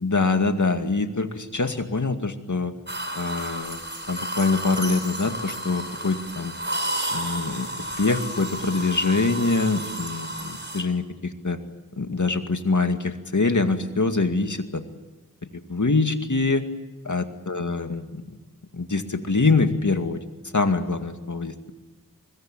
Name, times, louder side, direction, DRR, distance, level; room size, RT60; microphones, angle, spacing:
voice 1, 0.0-2.7 3.2-3.8 4.1-6.5 7.1-7.7 8.0-11.6 12.0-14.8 15.7-16.6 17.0-18.2 18.7-20.2 20.5-21.5, left 3 dB, 60° left, 6 dB, 2.3 m, -24 dB
sound 1, 2.9-10.8, right 1 dB, 30° right, 5.2 m, -32 dB
24.5 x 21.5 x 8.7 m, 1.2 s
wide cardioid pair, 45°, 35 cm